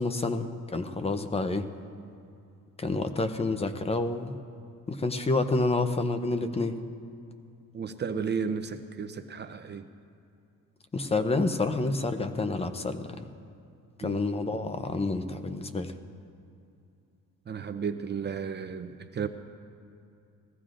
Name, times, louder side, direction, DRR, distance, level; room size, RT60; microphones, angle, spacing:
voice 1, 0.0-1.7 2.8-4.3 4.9-6.8 10.9-13.0 14.0-15.9, left 3 dB, 15° left, 9 dB, 0.6 m, -28 dB
voice 2, 7.7-9.9 14.0-14.2 17.5-19.3, right 6 dB, 30° right, 8 dB, 0.6 m, -33 dB
21.0 x 15.0 x 2.5 m, 2.6 s
cardioid pair, 135°, 35 cm